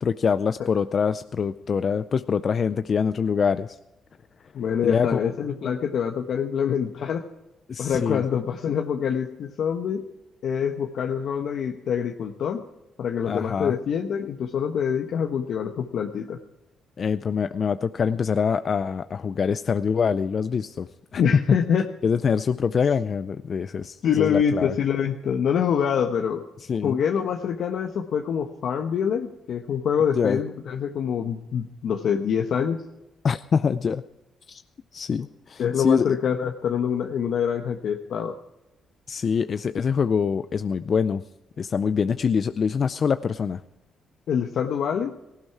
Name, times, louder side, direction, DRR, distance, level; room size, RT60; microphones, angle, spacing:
voice 1, 0.0-3.8 4.8-5.2 7.7-8.2 13.3-13.7 17.0-20.9 21.1-21.4 22.0-24.7 26.7-27.0 30.2-30.4 33.2-34.0 34.5-34.6 34.9-36.2 39.1-41.2 41.6-43.6, left 6 dB, 45° left, 11 dB, 0.5 m, -24 dB
voice 2, 4.5-7.2 7.8-10.0 10.4-12.6 13.0-16.4 21.2-21.8 24.0-26.4 26.8-32.8 35.6-38.4 44.3-45.2, left 7 dB, 65° left, 3 dB, 1.1 m, -25 dB
18.0 x 16.0 x 4.8 m, 0.95 s
cardioid pair, 90°, 0 cm